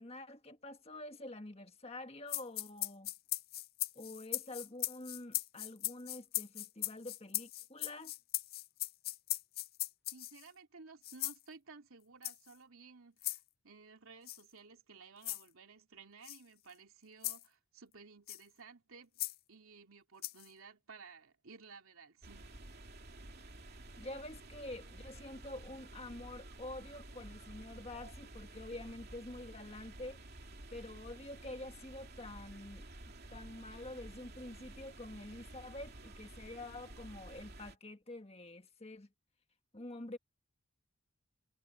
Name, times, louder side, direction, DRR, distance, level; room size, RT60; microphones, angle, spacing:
voice 1, 0.0-3.1 3.9-8.1 24.0-30.2 30.7-32.9 33.3-39.1 39.7-40.2, left 2 dB, 30° left, 1.6 m, -47 dB
sound 1, 2.3-10.5 11.0-11.4 12.2-12.5 13.2-13.4 14.3-14.4 15.2-15.4 16.2-16.4 17.2-17.4 18.3-18.4 19.2-19.3 20.2-20.5, left 16 dB, 45° left, 0.5 m, -39 dB
voice 2, 10.1-19.2 19.5-22.6, right 4 dB, 75° right, 2.7 m, -56 dB
sound 2, 22.2-37.7, right 2 dB, 45° right, 3.1 m, -52 dB
head